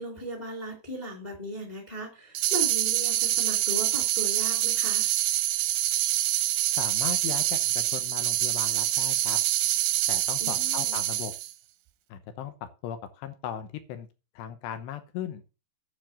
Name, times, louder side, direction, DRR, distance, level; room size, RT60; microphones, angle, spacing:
voice 1, 0.0-5.1 10.4-11.1, right 1 dB, 15° left, 2 dB, 1.5 m, -37 dB
sound 1, 2.3-11.5, right 14 dB, 90° right, 3.2 m, -26 dB
voice 2, 6.8-9.4 10.1-11.3 12.1-14.1 14.4-15.4, left 9 dB, 80° left, 9 dB, 3.1 m, -37 dB
9.6 x 4.7 x 7.5 m, 0.31 s
omnidirectional pair, 5.2 m